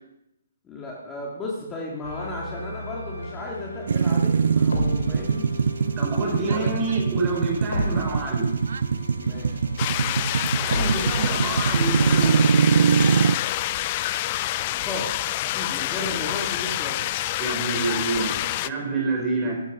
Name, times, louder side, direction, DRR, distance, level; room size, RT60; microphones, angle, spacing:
voice 1, 0.6-5.5 6.4-6.7 9.2-9.6 14.7-15.1 15.5-17.0, left 2 dB, 15° left, -3 dB, 2.4 m, -34 dB
sound 1, 2.0-12.3, left 2 dB, 90° left, 2.9 m, -34 dB
sound 2, 3.9-13.3, right 6 dB, 70° right, 0.5 m, -22 dB
voice 2, 6.0-8.6 10.6-12.4 17.4-19.6, right 3 dB, 20° right, 0 dB, 5.0 m, -28 dB
sound 3, 9.8-18.7, left 15 dB, 35° left, 0.4 m, -27 dB
13.0 x 11.0 x 6.3 m, 0.86 s
hypercardioid pair, 140°, 0 cm